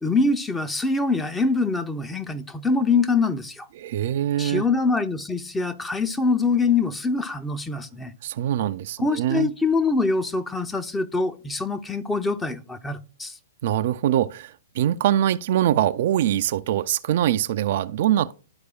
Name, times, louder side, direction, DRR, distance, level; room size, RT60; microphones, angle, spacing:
voice 1, 0.0-3.7 4.4-8.1 9.0-13.4, left 3 dB, 10° left, 0.6 m, -24 dB
voice 2, 3.8-4.6 8.2-9.5 13.6-18.3, right 11 dB, 50° right, 0.3 m, -23 dB
12.5 x 4.7 x 2.3 m
figure-of-eight pair, 110°, 0 cm